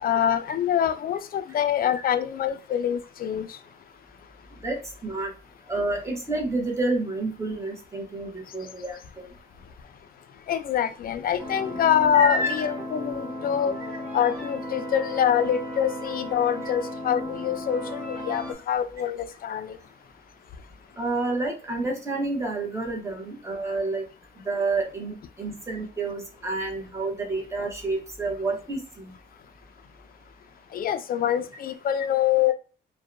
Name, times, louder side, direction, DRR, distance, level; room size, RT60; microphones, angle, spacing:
voice 1, 0.0-3.6 10.5-13.7 14.1-19.8 30.7-32.5, left 9 dB, 50° left, 0.4 m, -25 dB
voice 2, 4.6-5.3 5.7-9.0 12.1-12.5 21.0-24.1 24.4-29.1, right 2 dB, 15° right, 1.0 m, -29 dB
sound 1, 11.4-18.5, left 1 dB, 5° left, 1.2 m, -35 dB
2.6 x 2.2 x 2.4 m
cardioid pair, 90°, 20 cm